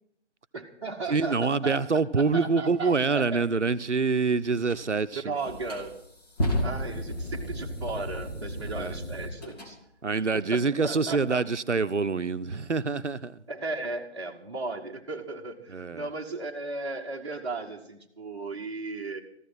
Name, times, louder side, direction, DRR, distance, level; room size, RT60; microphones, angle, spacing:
voice 1, 0.5-3.4 5.2-6.0 6.6-9.8 10.2-11.4 13.5-19.2, right 3 dB, 25° right, 1.2 m, -36 dB
voice 2, 1.1-5.4 6.8-7.0 8.7-9.0 10.0-13.4 15.7-16.1, right 4 dB, 75° right, 0.8 m, -26 dB
sound 1, 4.7-4.8 5.4-9.7, left 1 dB, 35° left, 2.9 m, -32 dB
14.5 x 11.5 x 5.8 m
figure-of-eight pair, 155°, 35 cm